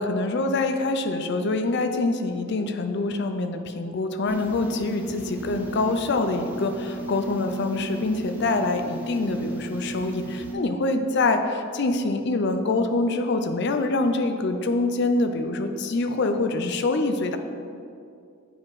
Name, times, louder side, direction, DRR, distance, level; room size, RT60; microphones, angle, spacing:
voice 1, 0.0-17.4, left 2 dB, 55° left, 7 dB, 0.5 m, -25 dB
sound 1, 4.3-10.5, right 2 dB, 10° right, 0.8 m, -35 dB
8.2 x 4.9 x 4.8 m, 2.4 s
head